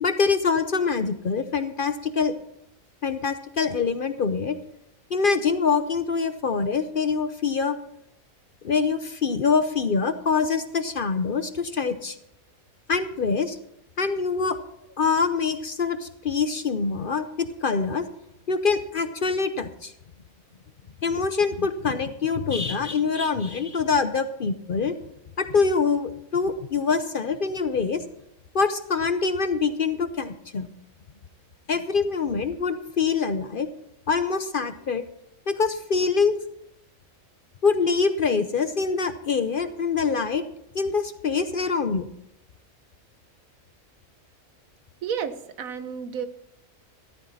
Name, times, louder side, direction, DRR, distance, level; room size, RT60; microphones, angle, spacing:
voice 1, 0.0-2.3 3.0-4.6 5.1-7.8 8.6-12.2 12.9-13.6 14.0-14.6 15.0-18.0 18.5-19.9 21.0-24.9 25.4-28.0 28.5-30.7 31.7-33.7 34.1-35.0 35.5-36.4 37.6-40.4 40.7-42.1, left 5 dB, 50° left, 10 dB, 0.7 m, -24 dB
voice 2, 45.0-46.3, right 7 dB, 80° right, 12 dB, 1.4 m, -31 dB
13.5 x 12.5 x 4.1 m, 0.79 s
omnidirectional pair, 1.4 m